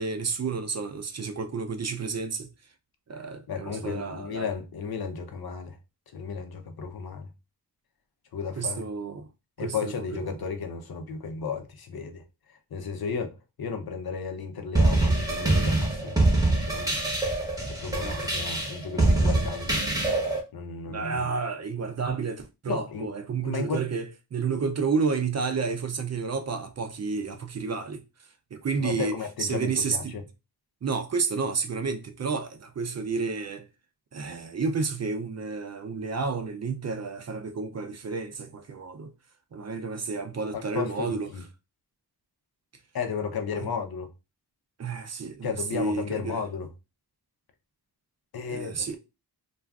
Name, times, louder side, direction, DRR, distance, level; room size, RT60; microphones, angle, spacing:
voice 1, 0.0-2.5 3.1-4.5 8.6-9.3 9.6-10.4 18.0-18.3 20.9-28.0 28.5-29.1 29.4-30.1 30.8-33.7 34.1-39.1 39.5-41.3 43.5-43.7 44.8-46.4 48.5-49.0, right 5 dB, 45° right, 0.4 m, -31 dB
voice 2, 3.5-5.8 6.1-7.3 8.3-8.9 9.6-12.2 12.7-16.2 16.4-17.0 17.7-19.8 20.5-21.3 22.7-23.1 23.4-23.9 28.8-30.2 40.5-41.4 42.9-44.1 45.4-46.7 48.3-49.0, left 5 dB, 65° left, 0.6 m, -34 dB
sound 1, 14.7-20.4, right 2 dB, 10° right, 0.8 m, -24 dB
2.4 x 2.3 x 3.4 m
wide cardioid pair, 100°, 39 cm